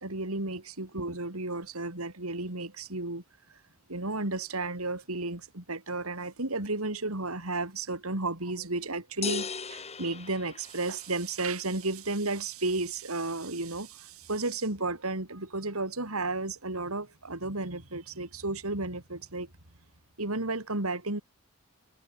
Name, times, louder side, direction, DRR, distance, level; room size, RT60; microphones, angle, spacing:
voice 1, 0.0-3.2 3.9-19.5 20.2-21.2, right 2 dB, 90° right, 4.3 m, -33 dB
sound 1, 9.2-11.3, left 5 dB, 30° left, 2.7 m, -37 dB
head